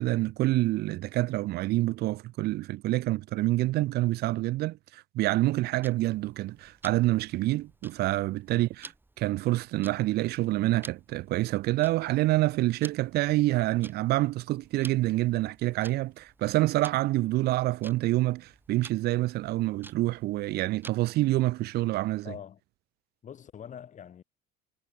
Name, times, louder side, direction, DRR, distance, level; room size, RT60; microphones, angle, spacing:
voice 1, 0.0-8.9 9.2-22.3, right 17 dB, 55° right, 0.5 m, -27 dB
Tick-tock, 5.8-21.2, right 2 dB, 10° right, 7.5 m, -53 dB
voice 2, 22.2-22.6 23.2-24.2, left 8 dB, 40° left, 5.8 m, -44 dB
supercardioid pair, 105°, 19 cm